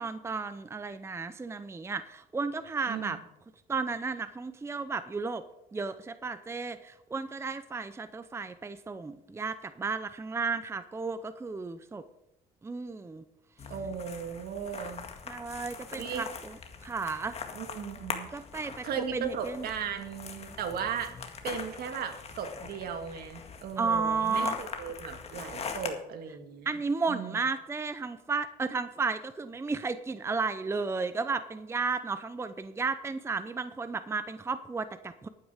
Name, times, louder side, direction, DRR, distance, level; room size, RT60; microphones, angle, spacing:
voice 1, 0.0-3.2 3.7-5.4 5.7-12.0 12.6-13.2 15.3-17.4 18.3-18.9 19.1-19.7 23.8-24.6 26.7-35.3, right 4 dB, 15° right, 12 dB, 0.6 m, -33 dB
sound 1, 13.6-25.9, left 5 dB, 40° left, 1.9 m, -42 dB
voice 2, 13.7-15.1 16.0-16.2 17.5-18.3 18.8-21.2 21.4-26.7 27.1-27.4, right 7 dB, 65° right, 6 dB, 2.1 m, -36 dB
12.0 x 9.3 x 5.0 m, 0.91 s
cardioid pair, 110°, 17 cm